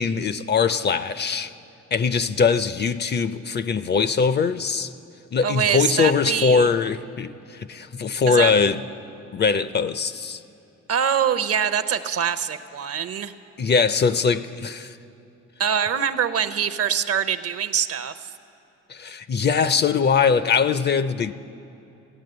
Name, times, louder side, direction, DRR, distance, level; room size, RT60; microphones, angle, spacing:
voice 1, 0.0-1.5 1.9-4.9 5.3-8.8 9.3-10.4 13.6-15.0 18.9-21.3, left 5 dB, 35° left, 0.4 m, -21 dB
voice 2, 5.4-6.7 8.3-8.5 10.9-13.3 15.6-18.1, right 8 dB, 50° right, 0.7 m, -24 dB
15.5 x 9.0 x 7.8 m
cardioid pair, 90°, 30 cm